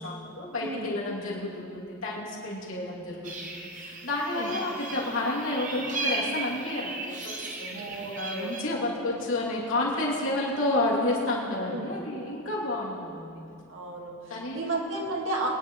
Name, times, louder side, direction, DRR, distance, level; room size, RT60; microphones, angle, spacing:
voice 1, 0.0-7.8 8.2-13.4 14.3-14.6, left 2 dB, 85° left, -5 dB, 2.9 m, -30 dB
voice 2, 0.6-1.0 4.2-4.5 7.7-8.8 9.0-9.2 11.7-12.0 13.7-15.5, right 2 dB, 70° right, -1 dB, 2.0 m, -34 dB
sound 1, 3.2-8.6, right 3 dB, 40° right, 1.2 m, -36 dB
22.5 x 10.0 x 3.2 m, 2.6 s
head